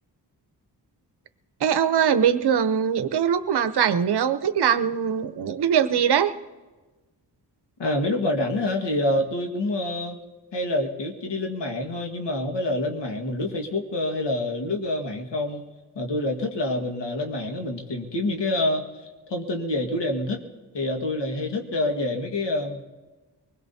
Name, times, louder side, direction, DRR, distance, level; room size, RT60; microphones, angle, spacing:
voice 1, 1.6-6.3, right 8 dB, 70° right, 11 dB, 0.8 m, -22 dB
voice 2, 7.8-10.2 10.5-15.6 16.0-20.4 20.7-22.8, left 1 dB, 85° left, 2 dB, 1.8 m, -27 dB
23.5 x 20.5 x 2.8 m, 1.2 s
wide cardioid pair, 90°, 41 cm